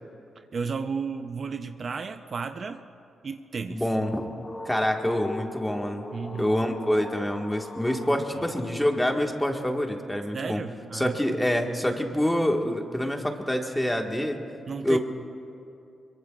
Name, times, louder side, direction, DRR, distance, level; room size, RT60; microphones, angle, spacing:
voice 1, 0.4-2.8 3.2-3.8 6.1-6.6 8.4-8.5 10.3-11.2 14.7-15.0, right 5 dB, 55° right, 7 dB, 0.7 m, -33 dB
sound 1, 3.6-9.7, left 2 dB, 40° left, 1.5 m, -40 dB
voice 2, 3.7-4.3 4.6-6.0 6.3-10.6 10.9-14.4 14.8-15.0, left 1 dB, 10° left, 2 dB, 1.7 m, -26 dB
23.0 x 23.0 x 2.5 m, 2.6 s
cardioid pair, 70°, 0 cm